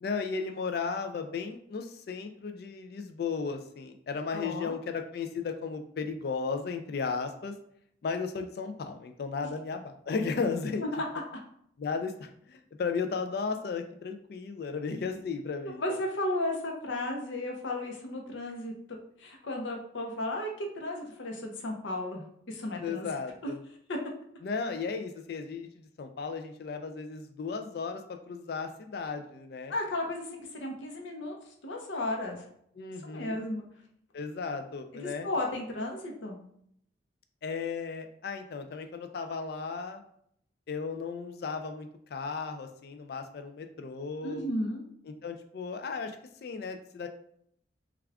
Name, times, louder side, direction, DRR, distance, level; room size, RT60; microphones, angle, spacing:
voice 1, 0.0-7.5 8.0-10.8 11.8-16.0 22.8-23.6 24.4-29.7 32.8-33.4 34.1-35.3 37.4-40.0 40.7-44.5 45.2-47.1, left 5 dB, 55° left, 7 dB, 0.3 m, -35 dB
voice 2, 4.3-4.7 10.9-11.1 15.6-23.1 23.4-23.5 23.9-24.0 29.7-32.5 33.0-33.6 34.9-36.4 44.2-44.9, left 1 dB, 80° left, 1 dB, 0.7 m, -34 dB
3.4 x 2.3 x 3.4 m, 0.68 s
head